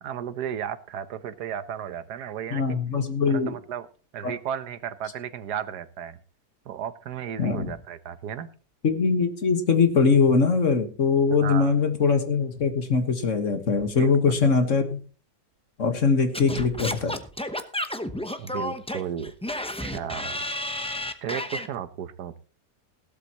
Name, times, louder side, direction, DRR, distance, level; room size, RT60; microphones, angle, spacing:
voice 1, 0.0-2.6 3.3-3.9 4.1-6.2 6.6-8.5 11.4-11.7 14.0-14.5 18.4-19.3 19.8-20.4 21.2-22.4, right 9 dB, 75° right, 13 dB, 1.4 m, -34 dB
voice 2, 2.5-3.5 4.2-4.3 7.4-7.7 8.8-15.0 15.8-17.2, left 5 dB, 50° left, 7 dB, 1.7 m, -22 dB
Singing / Scratching (performance technique), 16.3-21.7, left 1 dB, 5° left, 0.4 m, -31 dB
17.0 x 12.0 x 3.0 m, 0.38 s
omnidirectional pair, 1.8 m